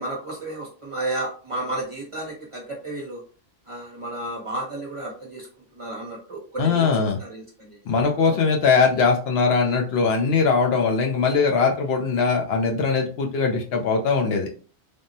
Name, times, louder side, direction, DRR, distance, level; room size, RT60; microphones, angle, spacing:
voice 1, 0.0-3.2 3.7-5.5 5.7-8.0 8.3-8.4, right 1 dB, 35° right, -3 dB, 0.7 m, -32 dB
voice 2, 6.6-7.2 7.9-14.5, left 4 dB, 65° left, 2 dB, 0.7 m, -21 dB
3.4 x 2.0 x 2.6 m, 0.41 s
omnidirectional pair, 1.2 m